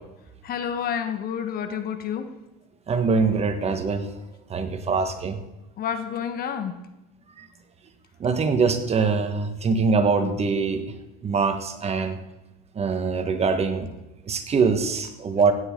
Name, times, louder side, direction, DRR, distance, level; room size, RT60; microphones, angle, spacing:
voice 1, 0.4-2.4 5.8-6.8, left 8 dB, 45° left, 1.3 m, -29 dB
voice 2, 2.9-4.1 4.5-5.4 7.4-7.5 8.2-10.8 11.2-12.2 12.7-13.9 14.3-15.5, right 4 dB, 30° right, 1.4 m, -23 dB
16.0 x 9.6 x 3.8 m
supercardioid pair, 90°, 21 cm